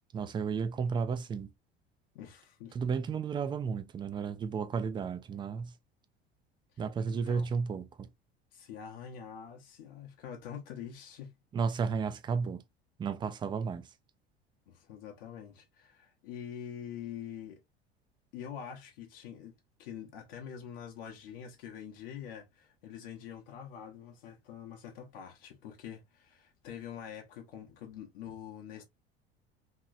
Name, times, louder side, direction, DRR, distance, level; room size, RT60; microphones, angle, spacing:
voice 1, 0.1-1.5 2.7-5.7 6.8-8.1 11.5-12.6 13.0-13.9, right 5 dB, 15° right, 0.3 m, -33 dB
voice 2, 2.1-2.8 7.1-7.5 8.5-11.3 14.7-17.6 18.3-19.5 19.8-28.8, left 8 dB, 60° left, 0.8 m, -45 dB
2.9 x 2.9 x 2.4 m
figure-of-eight pair, 70°, 31 cm